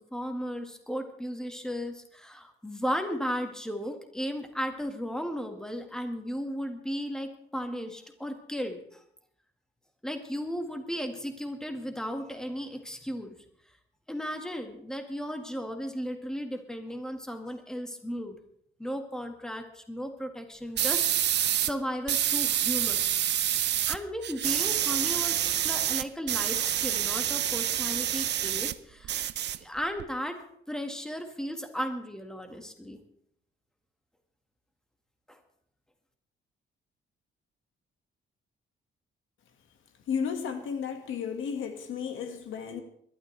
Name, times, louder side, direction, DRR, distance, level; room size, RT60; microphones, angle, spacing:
voice 1, 0.1-9.0 10.0-13.4 14.1-18.4 18.8-23.0 23.9-29.2 29.6-30.4 30.7-33.0 35.3-35.4, equal, 5° left, 5 dB, 1.7 m, -35 dB
sound 1, 20.8-21.7 22.1-24.0 24.2-28.7 29.0-30.0, right 11 dB, 60° right, 0.6 m, -27 dB
voice 2, 40.1-42.8, left 7 dB, 90° left, 6 dB, 1.8 m, -33 dB
22.0 x 12.5 x 3.3 m, 0.69 s
cardioid pair, 125°, 20 cm